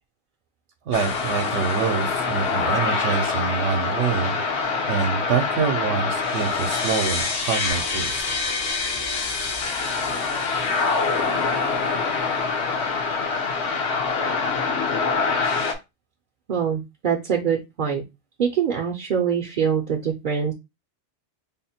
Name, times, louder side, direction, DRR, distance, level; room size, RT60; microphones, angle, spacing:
sound 1, 0.9-15.7, left 4 dB, 65° left, 1.0 m, -25 dB
voice 1, 0.9-8.2, right 6 dB, 75° right, 3 dB, 0.9 m, -26 dB
voice 2, 16.5-18.0 18.4-20.5, right 7 dB, 55° right, 2 dB, 0.6 m, -24 dB
3.6 x 2.1 x 4.2 m, 0.23 s
omnidirectional pair, 1.2 m